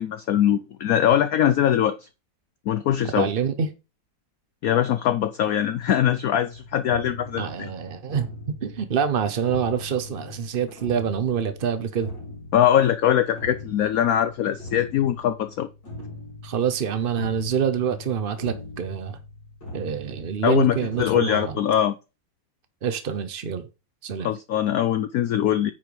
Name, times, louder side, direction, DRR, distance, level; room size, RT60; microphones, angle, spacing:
voice 1, 0.0-2.1 2.7-3.3 4.6-7.7 12.5-15.7 20.4-21.9 24.2-25.7, left 10 dB, 90° left, 0.7 m, -22 dB
voice 2, 3.2-3.7 7.4-8.3 8.6-12.1 16.4-19.2 19.7-21.6 22.8-23.6 24.0-24.3, right 7 dB, 65° right, 0.5 m, -26 dB
sound 1, 6.5-21.1, left 2 dB, 65° left, 4.2 m, -40 dB
9.0 x 4.7 x 5.2 m
omnidirectional pair, 2.1 m